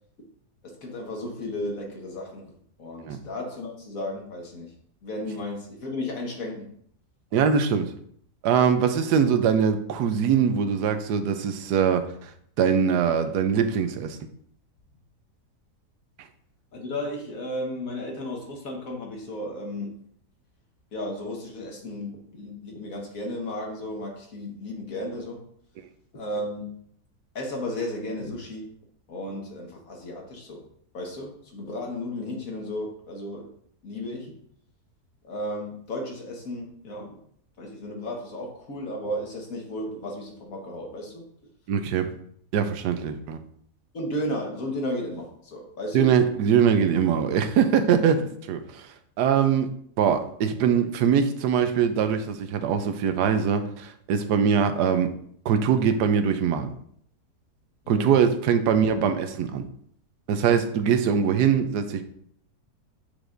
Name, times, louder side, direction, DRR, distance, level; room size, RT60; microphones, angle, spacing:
voice 1, 0.6-4.7 5.0-6.7 16.7-20.0 20.9-25.4 26.1-26.8 27.4-28.7 29.1-30.6 30.9-33.5 33.8-34.3 35.2-37.1 37.6-41.2 43.9-46.1 57.9-58.1, left 1 dB, 60° left, 0 dB, 1.8 m, -34 dB
voice 2, 7.3-7.9 8.4-12.1 12.6-14.2 41.7-42.1 42.5-43.4 45.9-48.9 49.2-49.7 50.0-55.1 55.4-56.7 57.9-59.6 60.3-62.0, right 7 dB, 90° right, 8 dB, 1.2 m, -22 dB
8.8 x 4.8 x 2.6 m, 0.65 s
omnidirectional pair, 1.7 m